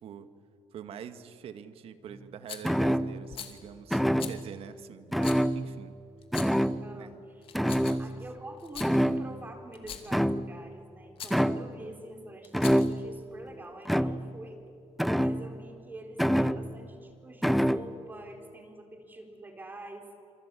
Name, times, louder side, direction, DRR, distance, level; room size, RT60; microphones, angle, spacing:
voice 1, 0.7-6.0 6.9-7.2 7.7-8.0, right 8 dB, 55° right, 10 dB, 1.8 m, -45 dB
Rattle, 2.5-2.8 3.3-3.6 4.2-4.4 5.2-5.4 6.2-6.7 7.4-8.1 8.6-8.9 9.7-10.2 11.2-11.4 12.4-13.0, left 8 dB, 50° left, 2.7 m, -42 dB
sound 1, 2.6-3.4 3.9-4.5 5.1-6.0 6.3-7.0 7.5-8.5 8.8-9.6 10.1-10.7 11.3-11.8 12.5-13.2 13.9-14.4 15.0-15.7 16.2-16.9 17.4-17.9, equal, ahead, 0.6 m, -27 dB
voice 2, 6.8-7.5 8.0-14.6 15.1-20.0, right 1 dB, 15° right, 4 dB, 4.0 m, -46 dB
27.5 x 25.5 x 8.5 m, 2.6 s
cardioid pair, 145°, 12 cm